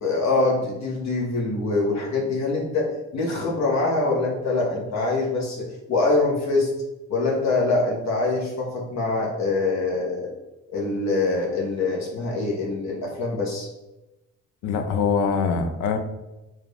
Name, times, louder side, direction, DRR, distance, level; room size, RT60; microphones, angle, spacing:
voice 1, 0.0-6.7 7.1-10.3 10.7-13.7, left 3 dB, 65° left, -1 dB, 1.0 m, -24 dB
voice 2, 14.6-16.0, left 5 dB, 90° left, 7 dB, 0.6 m, -23 dB
4.7 x 2.4 x 3.3 m, 1.0 s
cardioid pair, 90°, 30 cm